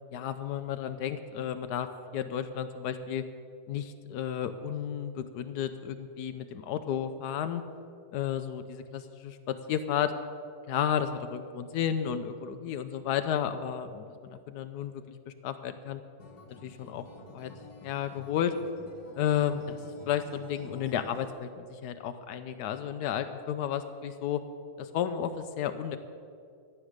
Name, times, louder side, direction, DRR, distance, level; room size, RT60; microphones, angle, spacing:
voice 1, 0.1-1.9 2.1-3.2 3.7-7.6 8.1-10.1 10.7-14.1 14.5-16.0 16.6-17.5 17.8-18.5 19.2-24.4 24.8-26.0, left 9 dB, 90° left, 9 dB, 1.2 m, -32 dB
Acoustic guitar, 16.2-21.3, left 2 dB, 75° left, 2.1 m, -49 dB
13.0 x 9.1 x 6.5 m, 2.3 s
omnidirectional pair, 1.7 m